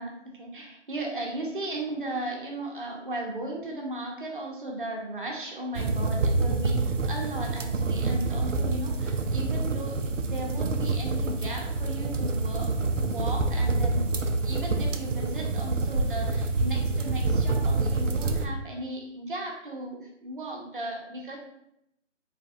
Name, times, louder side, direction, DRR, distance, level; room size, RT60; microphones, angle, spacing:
voice 1, 0.0-12.7 13.0-21.4, right 1 dB, 45° right, 0 dB, 0.8 m, -36 dB
sound 1, 5.7-18.5, right 3 dB, 80° right, 0.6 m, -27 dB
3.9 x 3.2 x 2.4 m, 0.80 s
figure-of-eight pair, 165°, 37 cm